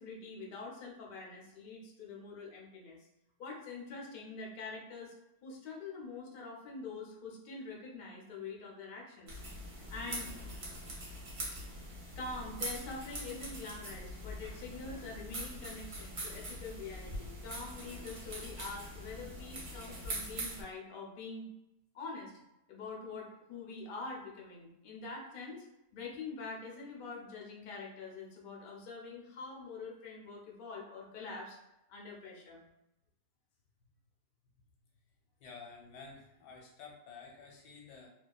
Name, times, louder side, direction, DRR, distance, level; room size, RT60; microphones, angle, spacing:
voice 1, 0.0-3.1 3.4-5.1 5.4-9.4 9.9-10.3 11.7-11.8 12.2-21.5 21.9-22.4 22.7-25.6 25.9-31.6 31.9-32.6, left 4 dB, 70° left, -2 dB, 0.5 m, -45 dB
sound 1, 9.3-20.6, right 1 dB, 55° right, 0.9 m, -43 dB
voice 2, 35.4-38.1, left 5 dB, 90° left, 0 dB, 1.2 m, -51 dB
2.7 x 2.3 x 2.2 m, 0.87 s
omnidirectional pair, 1.7 m